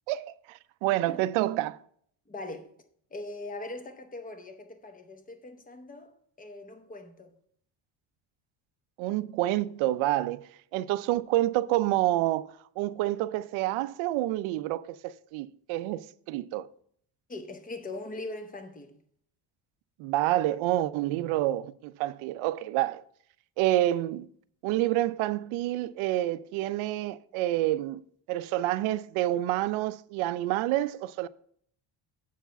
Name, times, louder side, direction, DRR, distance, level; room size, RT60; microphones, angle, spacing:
voice 1, 0.1-1.8 9.0-10.4 10.7-16.7 20.0-23.0 23.6-24.3 24.6-28.0 28.3-31.3, right 15 dB, 85° right, 0.5 m, -28 dB
voice 2, 2.3-2.7 3.1-6.1 6.4-7.3 17.3-19.0, left 2 dB, 20° left, 0.8 m, -41 dB
8.1 x 4.7 x 5.7 m
cardioid pair, 140°, 47 cm